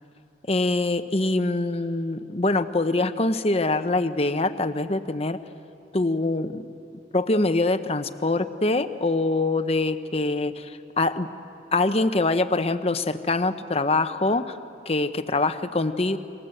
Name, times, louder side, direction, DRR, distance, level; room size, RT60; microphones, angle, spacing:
voice 1, 0.5-5.4 5.9-6.6 7.1-11.3 11.7-14.6 14.9-16.2, left 2 dB, 35° left, 10 dB, 0.9 m, -24 dB
30.0 x 24.0 x 7.9 m, 2.6 s
head